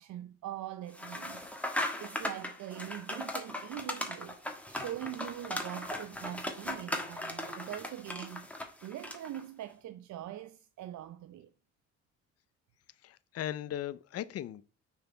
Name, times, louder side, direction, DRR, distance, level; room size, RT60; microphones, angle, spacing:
voice 1, 0.0-8.5 8.8-11.5, right 12 dB, 70° right, 0.6 m, -43 dB
sound 1, 0.9-9.4, left 1 dB, 5° left, 1.3 m, -38 dB
voice 2, 13.0-14.6, left 11 dB, 55° left, 0.5 m, -38 dB
6.6 x 4.3 x 5.6 m
cardioid pair, 90°, 30 cm